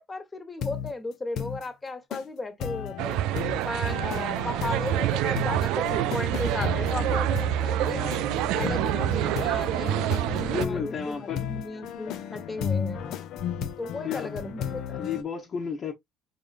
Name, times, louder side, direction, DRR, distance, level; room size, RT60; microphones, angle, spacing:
voice 1, 0.0-3.2 3.6-8.1 8.6-13.1 13.8-15.0, left 2 dB, 25° left, 1.4 m, -35 dB
sound 1, 0.6-0.9 1.4-1.6 2.1-2.2 2.6-15.2, left 8 dB, 60° left, 0.7 m, -34 dB
sound 2, 3.0-10.6, right 14 dB, 65° right, 0.3 m, -27 dB
voice 2, 10.5-11.4 14.0-14.3 15.0-15.9, left 5 dB, 45° left, 1.2 m, -32 dB
4.8 x 4.1 x 2.5 m
hypercardioid pair, 60°, 0 cm